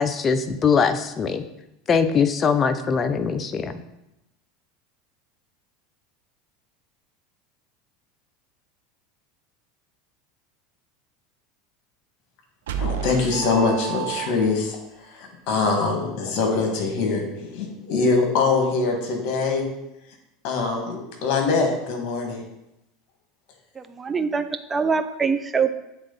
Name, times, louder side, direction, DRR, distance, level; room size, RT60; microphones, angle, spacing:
voice 1, 0.0-1.4 1.9-3.8, left 6 dB, 30° left, 10 dB, 0.5 m, -22 dB
sound 1, 12.7-14.8, right 10 dB, 85° right, 0.6 m, -30 dB
voice 2, 12.8-14.8 15.1-19.6 20.4-22.4, left 4 dB, 55° left, 2 dB, 1.8 m, -23 dB
voice 3, 24.0-25.7, right 5 dB, 20° right, 10 dB, 0.5 m, -23 dB
8.1 x 3.7 x 4.0 m, 0.91 s
supercardioid pair, 105°, 0 cm